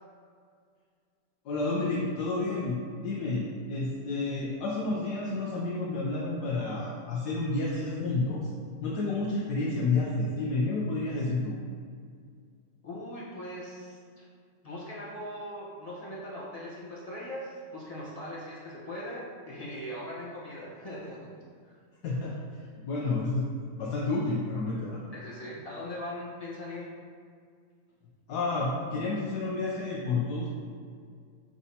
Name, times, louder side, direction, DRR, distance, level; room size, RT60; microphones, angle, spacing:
voice 1, 1.4-8.5 8.8-11.6 22.0-22.4 22.8-23.5 23.8-25.0 28.3-30.5, left 3 dB, 70° left, -5 dB, 1.2 m, -30 dB
voice 2, 12.8-14.3 14.6-21.3 21.6-21.8 25.1-26.8, left 1 dB, 25° left, -7 dB, 1.0 m, -40 dB
6.1 x 5.4 x 2.8 m, 2.1 s
omnidirectional pair, 1.9 m